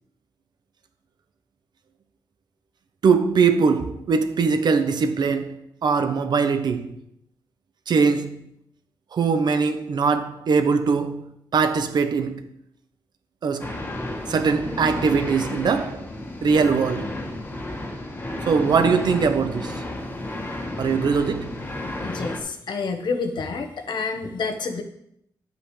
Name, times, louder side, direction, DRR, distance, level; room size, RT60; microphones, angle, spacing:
voice 1, 3.0-5.6 5.8-6.9 7.9-8.5 9.1-12.4 13.4-13.7 14.3-16.0 16.4-17.1 18.5-19.8 20.8-21.5, right 5 dB, 65° right, 0.9 m, -21 dB
sound 1, 13.6-22.4, left 1 dB, 30° left, 1.5 m, -32 dB
voice 2, 22.0-24.8, left 4 dB, 75° left, 1.2 m, -28 dB
10.5 x 8.4 x 3.3 m
wide cardioid pair, 150°, 8 cm